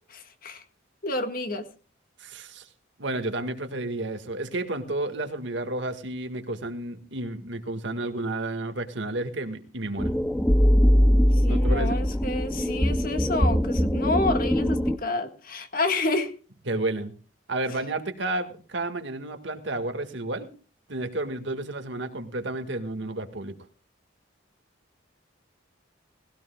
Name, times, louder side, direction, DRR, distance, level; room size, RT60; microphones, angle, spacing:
voice 1, 0.1-0.6 1.0-1.7 11.3-16.3, left 2 dB, 45° left, 7 dB, 1.7 m, -29 dB
voice 2, 2.2-2.6 3.0-10.1 11.5-12.0 16.7-17.1 17.5-20.5 20.9-23.5, right 2 dB, 65° right, 7 dB, 1.9 m, -31 dB
sound 1, 10.0-15.0, equal, 5° left, 0.5 m, -21 dB
20.0 x 16.5 x 2.3 m, 0.37 s
head